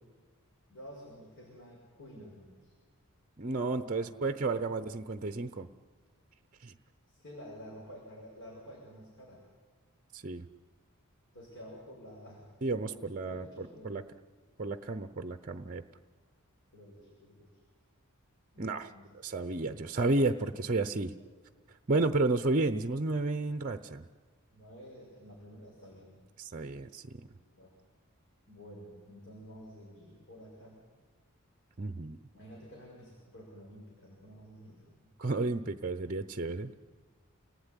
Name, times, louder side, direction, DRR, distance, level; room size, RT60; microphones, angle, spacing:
voice 1, 0.7-2.7 3.8-4.4 7.1-9.5 11.3-12.5 12.8-14.1 16.7-17.5 18.5-19.1 21.1-21.2 24.5-26.2 27.4-27.7 28.5-30.8 32.3-34.9, equal, 55° left, -3 dB, 7.1 m, -50 dB
voice 2, 3.4-5.7 6.6-6.7 10.1-10.5 12.6-14.0 14.6-15.8 18.6-18.9 19.2-21.2 21.9-24.1 26.4-27.2 31.8-32.2 35.2-36.7, right 2 dB, 40° right, 10 dB, 0.7 m, -32 dB
29.0 x 19.0 x 9.9 m, 1.5 s
head